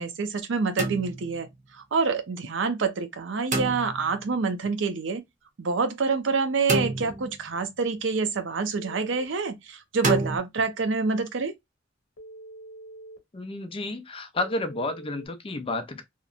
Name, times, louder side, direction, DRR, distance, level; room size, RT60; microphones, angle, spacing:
voice 1, 0.0-5.2 5.6-11.5, right 4 dB, 80° right, 0.6 m, -27 dB
sound 1, 0.8-1.5 3.5-4.2 6.7-7.6 10.0-10.4, right 2 dB, 45° right, 0.8 m, -28 dB
Telephone, 8.7-9.2 12.2-13.2 14.4-15.3, right 2 dB, 80° left, 1.0 m, -44 dB
voice 2, 13.3-16.0, left 2 dB, 30° left, 0.5 m, -31 dB
2.9 x 2.0 x 2.3 m
head